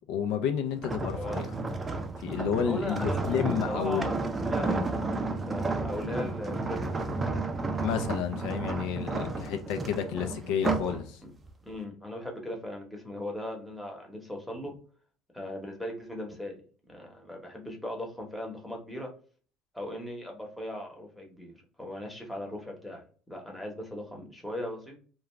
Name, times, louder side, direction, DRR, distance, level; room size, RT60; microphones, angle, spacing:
voice 1, 0.1-1.5 2.2-4.2 4.6-4.8 7.8-11.2, left 8 dB, 75° left, 0.4 m, -31 dB
sound 1, 0.8-11.0 11.4-11.7, right 3 dB, 20° right, 0.4 m, -32 dB
voice 2, 1.1-1.5 2.6-5.0 5.5-7.1 11.7-14.7 15.3-16.6 16.9-19.1 19.7-21.5 21.8-25.0, left 1 dB, ahead, 0.9 m, -38 dB
2.4 x 2.2 x 3.0 m
cardioid pair, 120°, 0 cm